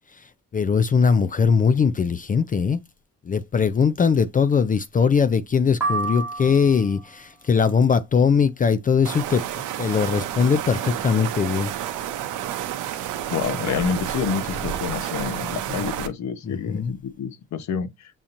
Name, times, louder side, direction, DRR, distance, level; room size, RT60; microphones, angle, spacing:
voice 1, 0.5-2.8 3.3-9.4 9.8-11.7 15.7-15.8 16.4-16.9, left 6 dB, 30° left, 0.4 m, -20 dB
sound 1, 5.8-7.1, right 3 dB, 5° right, 1.2 m, -28 dB
sound 2, 9.0-16.1, right 11 dB, 85° right, 0.7 m, -30 dB
voice 2, 13.3-17.9, left 7 dB, 65° left, 0.9 m, -28 dB
7.2 x 2.8 x 2.5 m
cardioid pair, 90°, 30 cm